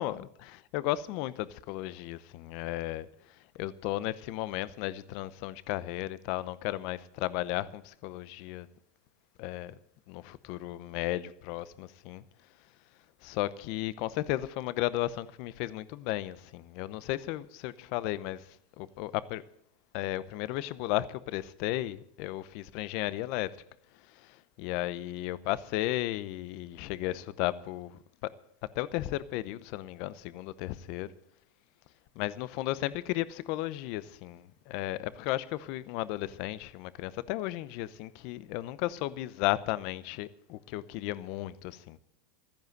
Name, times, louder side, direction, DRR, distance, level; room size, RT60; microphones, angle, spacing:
voice 1, 0.0-3.1 3.6-8.7 9.4-9.7 10.1-12.2 13.2-18.4 18.8-19.4 19.9-23.5 24.2-28.0 28.8-31.1 32.2-42.0, left 15 dB, 55° left, 0.7 m, -34 dB
13.5 x 10.5 x 7.9 m
supercardioid pair, 140°, 0 cm